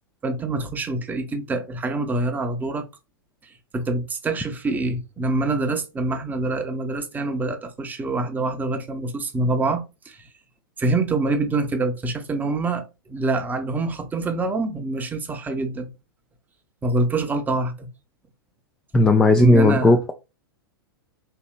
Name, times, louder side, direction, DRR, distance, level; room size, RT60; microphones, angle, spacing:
voice 1, 0.2-2.9 3.4-10.3 10.8-15.9 16.8-17.9 19.4-19.9, right 2 dB, 15° right, 0.7 m, -25 dB
voice 2, 18.9-20.1, left 2 dB, 5° left, 0.3 m, -16 dB
4.4 x 2.8 x 2.3 m
figure-of-eight pair, 100°, 12 cm